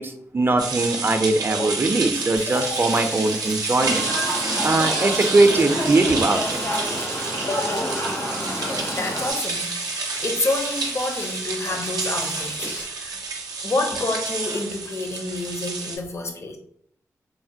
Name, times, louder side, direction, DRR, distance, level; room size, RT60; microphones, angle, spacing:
voice 1, 0.0-4.1 4.6-6.6, right 2 dB, 35° right, 6 dB, 0.4 m, -21 dB
sound 1, 0.6-16.0, right 4 dB, 90° right, 0.5 m, -29 dB
Frying (food), 2.4-12.8, left 1 dB, 85° left, 1.1 m, -36 dB
voice 2, 2.5-2.9 7.5-8.0 8.9-13.1 13.6-16.6, left 2 dB, 50° left, 4 dB, 0.6 m, -29 dB
sound 2, 3.8-9.3, equal, 65° left, 0.9 m, -29 dB
3.1 x 2.1 x 2.6 m, 0.67 s
cardioid pair, 60°, 6 cm